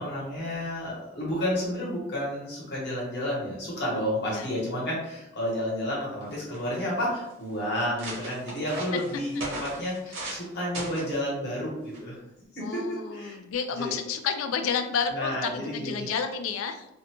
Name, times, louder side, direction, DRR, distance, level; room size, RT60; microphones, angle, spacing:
voice 1, 0.0-12.2 12.5-13.4 13.8-13.9 15.1-16.1, equal, 55° left, -5 dB, 1.0 m, -31 dB
sound 1, 5.9-6.0 6.2-6.8 7.4-7.5 7.8-10.5 10.7-11.2 11.9-12.2, right 1 dB, 65° right, 0.8 m, -38 dB
voice 2, 12.6-16.9, left 6 dB, 80° left, 7 dB, 0.3 m, -30 dB
2.6 x 2.2 x 2.8 m, 0.89 s
head